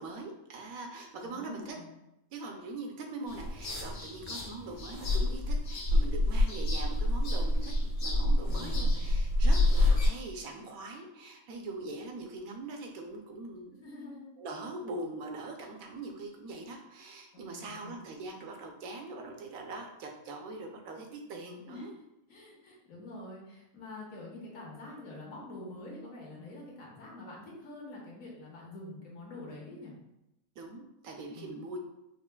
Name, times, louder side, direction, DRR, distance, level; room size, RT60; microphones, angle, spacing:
voice 1, 0.0-1.8 2.3-7.7 8.0-13.7 14.4-21.9 30.6-31.8, right 2 dB, 75° right, 2 dB, 1.1 m, -42 dB
voice 2, 1.2-1.9 8.5-9.0 13.8-14.3 17.3-17.9 21.6-21.9 22.3-30.0 31.3-31.6, left 2 dB, 70° left, -3 dB, 1.4 m, -46 dB
sound 1, 3.3-10.1, left 1 dB, 85° left, 1.6 m, -27 dB
5.7 x 2.4 x 2.2 m, 0.87 s
omnidirectional pair, 1.5 m